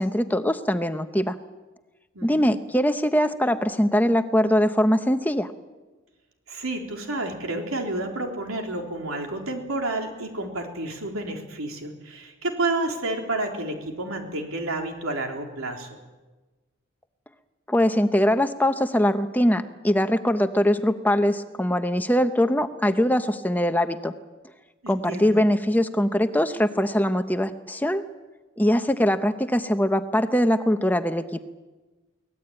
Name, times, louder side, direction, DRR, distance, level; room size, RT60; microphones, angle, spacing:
voice 1, 0.0-1.4 2.2-5.5 17.7-24.1 24.9-28.0 28.6-31.4, equal, 10° left, 9 dB, 0.8 m, -22 dB
voice 2, 2.1-2.5 6.5-15.9 24.8-25.4, right 2 dB, 90° right, 2 dB, 3.8 m, -30 dB
24.0 x 18.5 x 8.9 m, 1.2 s
head